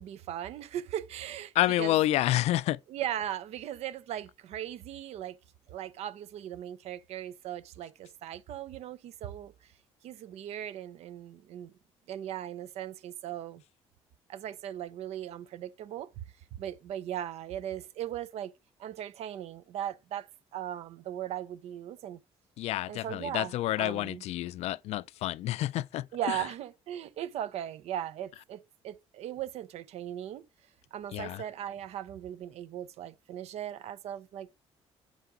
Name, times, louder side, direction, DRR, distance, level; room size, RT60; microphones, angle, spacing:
voice 1, 0.0-1.5 1.8-2.0 2.9-5.4 5.7-9.7 10.0-11.7 12.1-13.6 14.3-16.2 16.5-18.5 18.8-22.2 22.9-24.2 26.1-30.4 30.9-34.5, right 11 dB, 75° right, 0.6 m, -38 dB
voice 2, 1.5-2.8 22.6-26.5 31.1-31.4, left 15 dB, 75° left, 0.4 m, -29 dB
8.2 x 4.8 x 3.8 m
cardioid pair, 105°, 11 cm